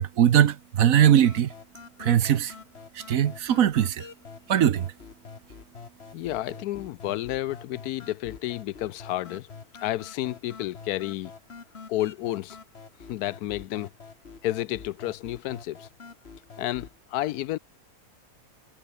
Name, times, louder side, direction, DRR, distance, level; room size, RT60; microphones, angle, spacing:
voice 1, 0.0-1.5 2.0-2.5 2.9-4.1 4.5-4.9, right 10 dB, 65° right, 1.2 m, -21 dB
sound 1, 1.0-17.0, left 5 dB, 40° left, 1.9 m, -46 dB
voice 2, 6.1-9.5 9.8-11.3 11.9-12.6 13.1-13.9 14.4-15.9 16.6-17.6, left 15 dB, 75° left, 1.1 m, -31 dB
omnidirectional pair, 1.7 m